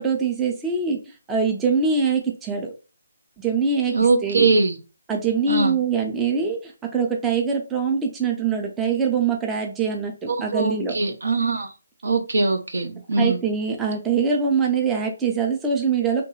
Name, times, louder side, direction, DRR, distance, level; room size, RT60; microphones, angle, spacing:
voice 1, 0.0-2.7 3.4-4.5 5.1-11.0 13.2-16.2, right 5 dB, 10° right, 0.5 m, -23 dB
voice 2, 3.9-4.8 5.5-5.8 10.5-11.7 12.0-13.4, right 3 dB, 60° right, 0.6 m, -21 dB
2.9 x 2.2 x 3.1 m
figure-of-eight pair, 145°, 0 cm